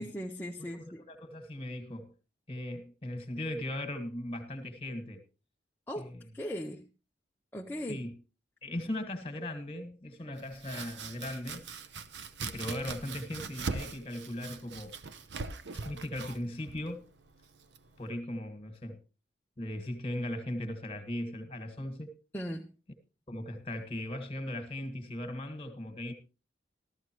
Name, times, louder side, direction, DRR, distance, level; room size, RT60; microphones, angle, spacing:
voice 1, 0.0-1.1 5.9-6.9 7.5-8.0 22.3-22.7, equal, 10° left, 0.6 m, -38 dB
voice 2, 0.6-2.1 2.5-5.2 6.0-6.2 7.9-8.1 8.6-11.6 12.4-14.9 15.8-17.1 18.0-19.0 19.6-22.1 23.3-26.1, left 1 dB, 30° left, 1.7 m, -38 dB
Domestic sounds home sounds, 10.4-18.1, right 4 dB, 75° right, 0.8 m, -42 dB
14.0 x 13.5 x 3.0 m
head